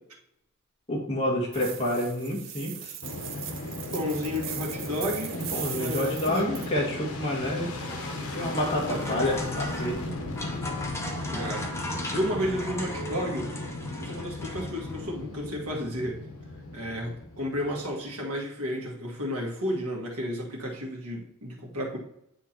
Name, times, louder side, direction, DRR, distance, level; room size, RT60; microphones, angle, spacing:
voice 1, 0.9-2.9 5.3-7.7 8.3-10.0, left 1 dB, 30° left, -3 dB, 2.1 m, -28 dB
sound 1, 1.5-6.7, right 10 dB, 60° right, 0.7 m, -39 dB
Fixed-wing aircraft airplane, 3.0-18.2, left 2 dB, 75° left, 1.2 m, -36 dB
voice 2, 3.9-5.4 5.7-6.5 8.9-9.2 11.3-11.7 12.1-13.5 14.0-16.2 16.7-22.0, equal, 80° right, 0 dB, 1.7 m, -32 dB
sound 2, 7.5-15.1, left 1 dB, 10° left, 0.9 m, -38 dB
9.3 x 3.6 x 4.4 m, 0.79 s
head